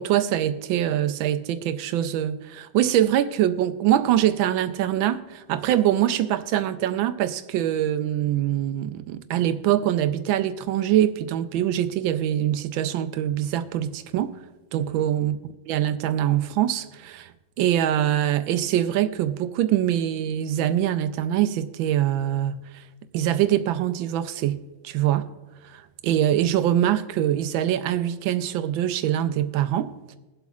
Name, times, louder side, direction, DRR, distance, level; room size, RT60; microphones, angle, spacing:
voice 1, 0.0-14.4 14.7-15.4 15.7-17.3 17.6-22.8 23.1-25.3 25.6-29.9, right 11 dB, 80° right, 1.4 m, -24 dB
22.0 x 7.9 x 2.4 m
omnidirectional pair, 2.1 m